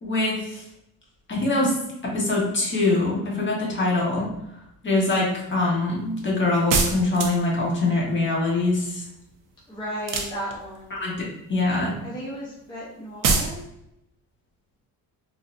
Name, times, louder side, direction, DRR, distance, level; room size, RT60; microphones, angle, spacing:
voice 1, 0.0-0.6 1.3-1.7 2.0-4.3 4.8-9.0 11.0-11.9, left 2 dB, 30° left, -3 dB, 1.2 m, -23 dB
sound 1, 6.7-7.6 10.0-10.8 13.2-13.6, right 4 dB, 60° right, 0.7 m, -23 dB
voice 2, 9.7-11.0 12.0-13.6, equal, 15° left, -7 dB, 0.8 m, -35 dB
3.8 x 2.7 x 2.5 m, 0.82 s
cardioid pair, 115°, 36 cm